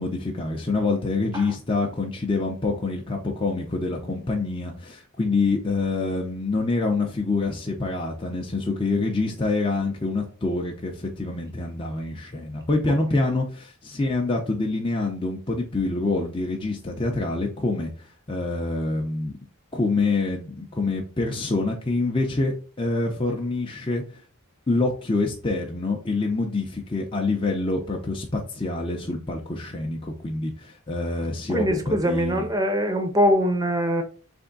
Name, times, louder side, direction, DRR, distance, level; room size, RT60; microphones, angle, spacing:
voice 1, 0.0-17.9 18.3-19.3 19.7-24.0 24.7-32.5, left 3 dB, 25° left, 0.6 m, -26 dB
voice 2, 12.9-13.3 31.5-34.0, equal, 15° right, 0.7 m, -23 dB
3.5 x 3.4 x 3.9 m
head